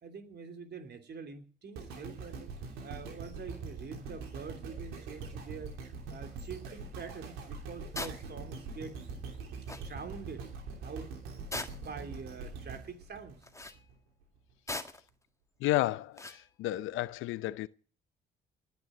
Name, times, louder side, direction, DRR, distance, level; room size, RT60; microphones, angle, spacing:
voice 1, 0.0-2.5 2.8-5.8 6.1-9.0 9.4-10.4 10.8-13.4, right 5 dB, 50° right, 3.0 m, -45 dB
sound 1, 1.8-14.0 14.5-14.6, right 4 dB, 80° right, 3.0 m, -43 dB
sound 2, 7.9-8.2 9.3-9.4 9.7-9.9 11.5-12.0 13.4-13.8 14.7-15.1 16.2-16.4, left 2 dB, 15° left, 1.7 m, -39 dB
voice 2, 15.6-17.7, left 16 dB, 75° left, 0.6 m, -32 dB
19.5 x 6.9 x 9.3 m
hypercardioid pair, 50°, 21 cm